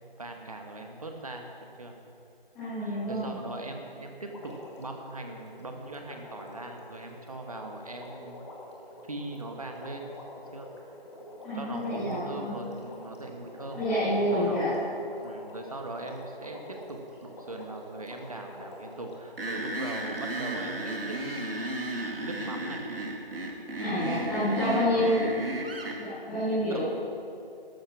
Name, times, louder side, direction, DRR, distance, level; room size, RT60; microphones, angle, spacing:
voice 1, 0.2-1.9 2.8-8.4 9.0-10.1 10.5-10.7 11.5-13.8 14.2-14.7 15.2-21.5 22.2-22.9 24.0-25.3 26.7-26.9, right 2 dB, 40° right, 3 dB, 1.2 m, -40 dB
voice 2, 2.5-3.3 11.4-12.5 13.7-14.7 23.8-25.3 25.9-26.9, equal, ahead, -17 dB, 1.1 m, -28 dB
Water, 4.2-19.3 20.2-20.3, left 1 dB, 30° left, 2.0 m, -47 dB
sound 1, 19.4-26.0, right 2 dB, 70° right, 2.4 m, -34 dB
13.0 x 12.5 x 5.8 m, 2.7 s
figure-of-eight pair, 175°, 30 cm